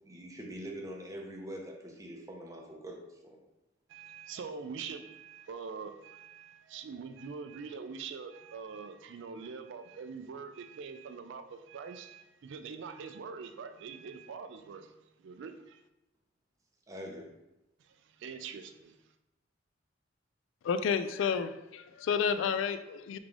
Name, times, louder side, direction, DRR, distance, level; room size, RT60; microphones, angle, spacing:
voice 1, 0.0-3.4 16.9-17.3, equal, 15° right, 0 dB, 0.7 m, -44 dB
voice 2, 3.9-14.9 15.2-15.8 17.8-19.0, right 5 dB, 65° right, 8 dB, 0.4 m, -44 dB
voice 3, 20.6-23.2, left 6 dB, 70° left, 11 dB, 0.3 m, -30 dB
3.7 x 3.4 x 3.6 m, 0.94 s
head